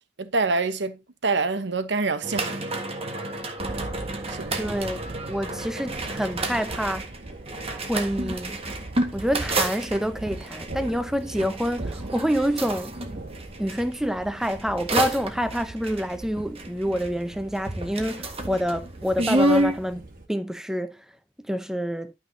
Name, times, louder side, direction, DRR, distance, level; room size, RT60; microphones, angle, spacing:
voice 1, 0.2-2.6 4.3-4.6, right 3 dB, 70° right, 1.0 m, -26 dB
sound 1, 2.2-13.8 14.4-17.3 17.5-19.8, right 1 dB, 35° right, 1.5 m, -29 dB
Thunder, 3.6-20.3, right 2 dB, 55° right, 2.0 m, -40 dB
voice 2, 4.5-5.0 5.2-7.1 7.9-8.6 9.1-13.0 13.6-21.0 21.4-22.1, equal, 5° right, 0.7 m, -27 dB
11.5 x 5.9 x 2.8 m
head